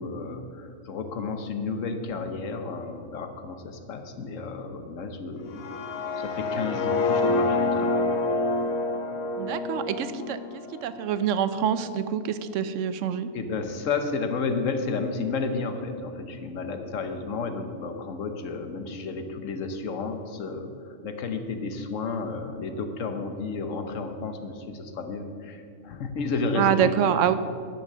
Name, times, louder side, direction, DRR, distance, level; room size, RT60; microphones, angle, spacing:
voice 1, 0.0-8.1 13.3-26.9, left 4 dB, 70° left, 7 dB, 1.2 m, -32 dB
sound 1, 5.5-11.4, left 3 dB, 90° left, 1.3 m, -27 dB
voice 2, 9.4-10.4 10.8-13.3 26.6-27.3, right 9 dB, 70° right, 12 dB, 0.9 m, -25 dB
12.0 x 6.2 x 6.6 m, 2.3 s
omnidirectional pair, 1.4 m